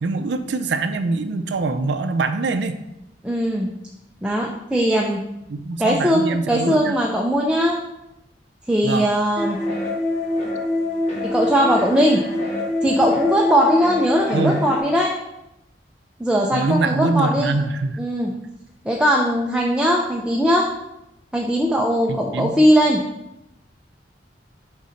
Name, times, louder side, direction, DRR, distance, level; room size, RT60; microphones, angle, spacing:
voice 1, 0.0-2.8 5.5-7.0 8.8-9.1 14.3-14.6 16.5-18.0 22.1-22.6, right 3 dB, 80° right, 9 dB, 0.5 m, -24 dB
voice 2, 3.2-3.7 4.2-5.2 5.8-7.8 8.7-9.6 11.2-12.2 12.8-15.1 16.2-17.6 18.0-18.3 18.8-20.7 21.3-23.0, equal, 5° right, -2 dB, 0.5 m, -19 dB
sound 1, 9.4-14.8, left 1 dB, 40° left, 1.4 m, -25 dB
5.1 x 4.1 x 5.0 m, 0.88 s
head